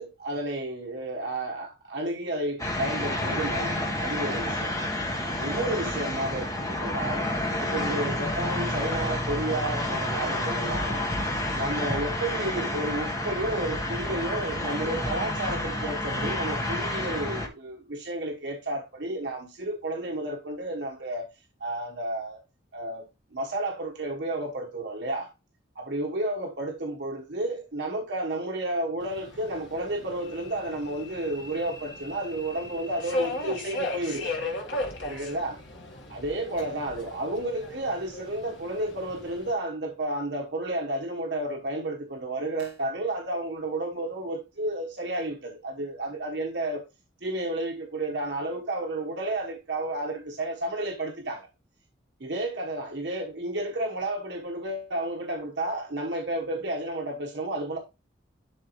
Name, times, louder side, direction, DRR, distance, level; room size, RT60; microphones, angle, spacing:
voice 1, 0.0-4.7 5.4-7.3 7.6-11.1 11.5-21.2 21.6-22.4 22.7-23.1 23.3-25.3 25.7-34.3 35.0-35.6 36.1-46.8 47.2-51.5 52.2-57.8, right 1 dB, 65° right, 1.1 m, -31 dB
sound 1, 2.6-17.5, left 1 dB, 15° left, 1.1 m, -29 dB
Subway metro underground, 29.0-39.5, left 2 dB, 75° left, 1.6 m, -37 dB
11.0 x 3.9 x 3.1 m
head